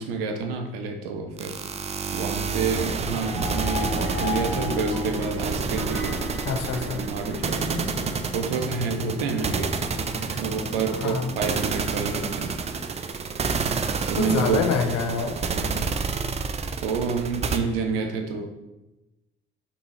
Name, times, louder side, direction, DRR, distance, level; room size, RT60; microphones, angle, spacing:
voice 1, 0.0-1.5 2.1-6.2 6.9-9.7 10.4-12.5 14.1-14.6 15.5-15.9 16.8-18.5, right 5 dB, 75° right, 5 dB, 0.6 m, -29 dB
sound 1, 1.4-17.6, right 5 dB, 20° right, 0.4 m, -29 dB
sound 2, 3.1-7.4, left 5 dB, 85° left, 1.4 m, -34 dB
sound 3, 3.4-15.8, equal, 5° right, 1.3 m, -40 dB
voice 2, 6.4-7.0 10.9-11.3 14.1-15.5, left 5 dB, 60° left, 4 dB, 0.8 m, -26 dB
6.1 x 2.7 x 3.2 m, 1.0 s
figure-of-eight pair, 45°, 29 cm